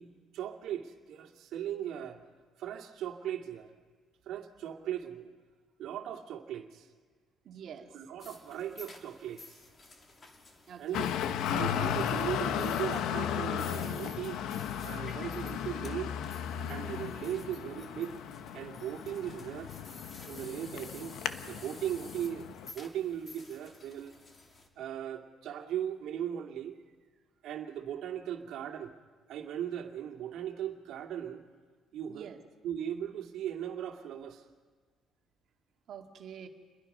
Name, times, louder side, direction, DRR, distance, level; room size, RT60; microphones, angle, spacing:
voice 1, 0.0-2.2 2.6-3.7 4.3-5.3 5.8-6.9 7.9-9.6 10.8-11.1 11.5-14.4 14.8-16.1 16.7-18.2 18.5-19.7 20.3-21.2 21.4-22.5 22.7-24.1 24.8-26.8 27.4-28.9 29.3-31.4 31.9-32.3 32.6-34.4, right 10 dB, 75° right, 3 dB, 2.2 m, -38 dB
voice 2, 7.4-8.0 10.7-11.1 32.1-32.4 35.9-36.5, right 8 dB, 55° right, 3 dB, 2.1 m, -46 dB
sound 1, 8.2-24.7, left 3 dB, 30° left, 2.6 m, -53 dB
Traffic noise roadway noise, 10.9-22.7, left 9 dB, 75° left, 0.9 m, -35 dB
28.5 x 22.0 x 5.5 m, 1.5 s
cardioid pair, 125°, 0 cm